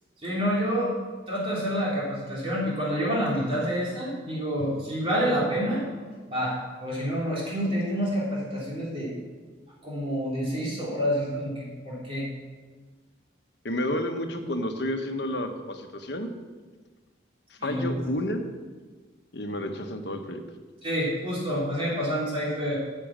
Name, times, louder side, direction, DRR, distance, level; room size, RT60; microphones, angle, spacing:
voice 1, 0.2-0.9 1.3-5.8 6.3-9.1 9.8-12.3 17.6-18.1 20.8-22.8, equal, 30° right, -6 dB, 3.3 m, -28 dB
voice 2, 13.6-16.3 17.6-18.4 19.3-20.4, left 1 dB, 65° left, 5 dB, 1.2 m, -30 dB
10.5 x 7.8 x 7.4 m, 1.4 s
head